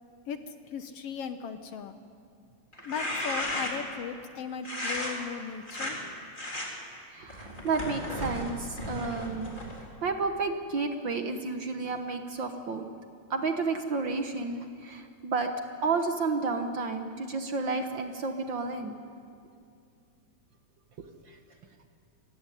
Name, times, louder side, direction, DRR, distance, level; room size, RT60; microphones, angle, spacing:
voice 1, 0.3-1.9 2.8-6.0, left 7 dB, 65° left, 9 dB, 1.6 m, -37 dB
sound 1, 2.7-3.9 4.6-5.1 5.6-5.9 6.3-6.7 7.3-9.9, left 1 dB, 15° left, 3.6 m, -34 dB
voice 2, 7.1-9.5 10.0-12.9 13.3-15.5 15.8-18.9 21.0-21.4, right 4 dB, 55° right, 6 dB, 1.3 m, -31 dB
27.5 x 16.5 x 10.0 m, 2.3 s
omnidirectional pair, 3.6 m